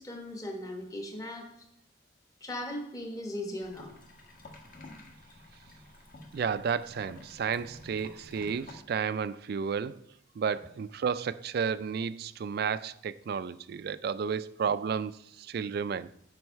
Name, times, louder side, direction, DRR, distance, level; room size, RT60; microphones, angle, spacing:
voice 1, 0.0-1.5 2.4-3.9, left 1 dB, 20° left, 1.1 m, -38 dB
sound 1, 3.6-8.7, left 2 dB, 45° left, 1.6 m, -51 dB
voice 2, 6.3-10.1 10.4-16.1, right 6 dB, 55° right, 0.3 m, -32 dB
9.4 x 5.3 x 4.6 m
head